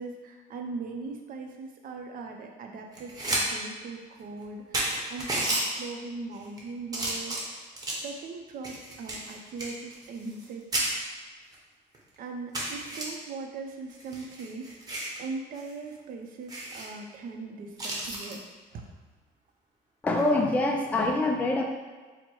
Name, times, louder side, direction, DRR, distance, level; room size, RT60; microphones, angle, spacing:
voice 1, 0.0-7.6 7.9-10.6 12.2-14.9 15.2-18.9, right 4 dB, 55° right, 3 dB, 0.6 m, -40 dB
sound 1, 2.9-3.4 3.8-3.9 4.4-4.5 4.7-5.6 6.3-6.6 6.9-8.1 8.6-10.5 10.7-10.9 11.5-11.6 11.9-12.0 12.5-13.0 13.9-15.2 15.5-15.7 16.0-16.1 16.5-16.9 17.8-18.4 20.1-20.3, right 1 dB, 20° right, 1.0 m, -32 dB
voice 2, 20.0-21.6, left 2 dB, 10° left, 2 dB, 0.3 m, -25 dB
4.5 x 2.1 x 4.4 m, 1.4 s
cardioid pair, 130°, 17 cm